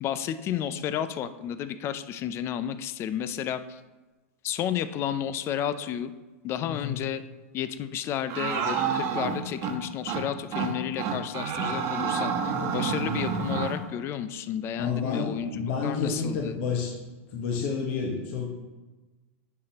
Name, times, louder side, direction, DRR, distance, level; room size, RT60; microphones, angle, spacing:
voice 1, 0.0-3.8 4.4-6.1 6.4-7.2 7.5-15.5 15.8-16.6, left 9 dB, 35° left, 12 dB, 0.4 m, -32 dB
voice 2, 6.6-7.0 14.7-16.9 17.3-18.5, left 5 dB, 55° left, -1 dB, 1.3 m, -30 dB
sound 1, 8.3-9.7 10.1-10.2 10.5-10.7 11.0-13.8, right 6 dB, 40° right, 1.2 m, -28 dB
9.4 x 5.8 x 2.9 m, 1.2 s
hypercardioid pair, 125°, 8 cm